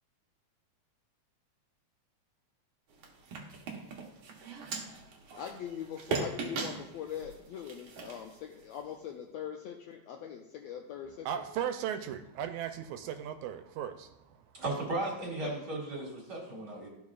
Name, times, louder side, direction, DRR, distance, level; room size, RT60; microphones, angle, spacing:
sound 1, 2.9-9.0, right 4 dB, 65° right, 1.3 m, -40 dB
voice 1, 5.4-11.4 15.2-15.6, left 9 dB, 80° left, 1.5 m, -42 dB
voice 2, 11.3-14.1, right 9 dB, 80° right, 1.9 m, -36 dB
voice 3, 14.5-16.9, right 2 dB, 40° right, 2.2 m, -35 dB
13.0 x 4.8 x 2.4 m
omnidirectional pair, 3.4 m